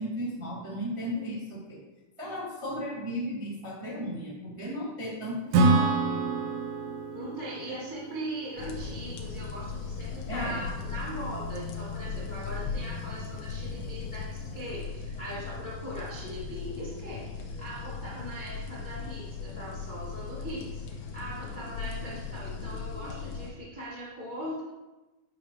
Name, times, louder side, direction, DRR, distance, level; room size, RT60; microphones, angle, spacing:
voice 1, 0.0-1.8 2.2-6.1 7.7-7.8 10.3-10.6, equal, 20° right, -8 dB, 0.8 m, -35 dB
Acoustic guitar / Strum, 5.5-9.1, right 3 dB, 80° right, 2.0 m, -27 dB
voice 2, 7.1-24.6, right 1 dB, 30° left, -9 dB, 0.8 m, -40 dB
sound 1, 8.6-23.5, left 5 dB, 80° left, 2.7 m, -38 dB
9.8 x 6.1 x 3.0 m, 1.1 s
omnidirectional pair, 4.4 m